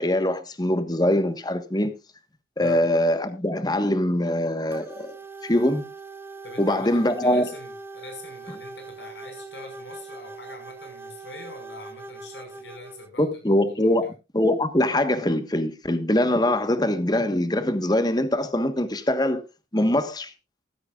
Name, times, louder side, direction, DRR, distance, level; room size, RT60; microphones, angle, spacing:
voice 1, 0.0-1.9 2.6-5.1 5.4-5.9 6.6-7.5 13.2-14.1 14.3-19.4 19.7-20.3, left 1 dB, 25° left, 1.3 m, -23 dB
sound 1, 4.7-13.1, right 3 dB, 15° right, 0.7 m, -41 dB
voice 2, 6.4-13.3 13.8-14.0, left 2 dB, 85° left, 5.6 m, -44 dB
15.5 x 13.0 x 2.4 m
head